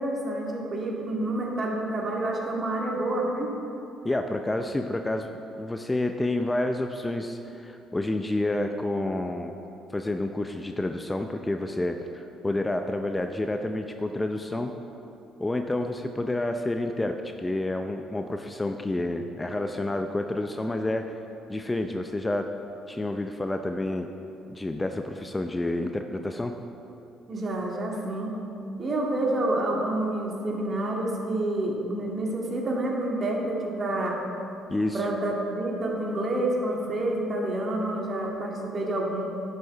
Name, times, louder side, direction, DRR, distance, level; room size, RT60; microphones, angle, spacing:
voice 1, 0.0-3.5 27.3-28.4 28.8-34.2 34.9-39.2, right 1 dB, 40° right, -1 dB, 2.0 m, -28 dB
voice 2, 4.0-9.6 9.9-14.7 15.4-21.1 21.5-22.5 22.9-24.1 24.5-26.5 34.7-35.1, left 2 dB, 15° left, 6 dB, 0.6 m, -29 dB
11.0 x 6.9 x 4.7 m, 2.7 s
hypercardioid pair, 50°, 0 cm